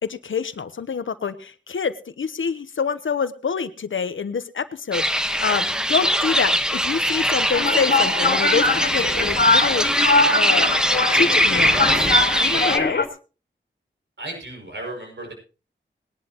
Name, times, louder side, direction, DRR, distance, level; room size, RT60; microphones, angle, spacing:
voice 1, 0.0-10.7 11.1-11.9 12.4-13.0, left 6 dB, 85° left, 12 dB, 1.0 m, -26 dB
sound 1, 4.9-12.8, equal, 5° right, 1.3 m, -21 dB
sound 2, 7.5-13.1, left 3 dB, 60° left, 2.4 m, -22 dB
voice 2, 14.2-15.3, right 2 dB, 65° right, 1 dB, 6.4 m, -34 dB
20.5 x 11.5 x 3.0 m, 0.35 s
wide cardioid pair, 55°, 20 cm